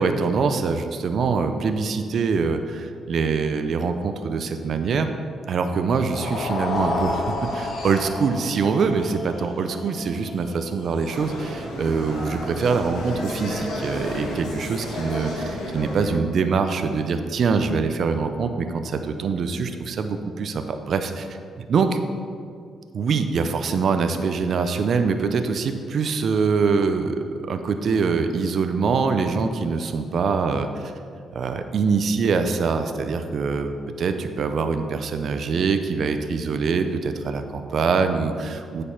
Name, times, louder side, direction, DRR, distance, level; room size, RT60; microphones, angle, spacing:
voice 1, 0.0-5.1 5.5-21.3 21.7-22.0 22.9-30.9 31.3-38.8, right 5 dB, 55° right, 7 dB, 0.5 m, -24 dB
sound 1, 6.0-12.2, left 2 dB, 60° left, 1.5 m, -31 dB
sound 2, 11.1-16.1, left 1 dB, 80° left, 2.2 m, -31 dB
8.4 x 5.1 x 5.8 m, 2.3 s
cardioid pair, 90°, 0 cm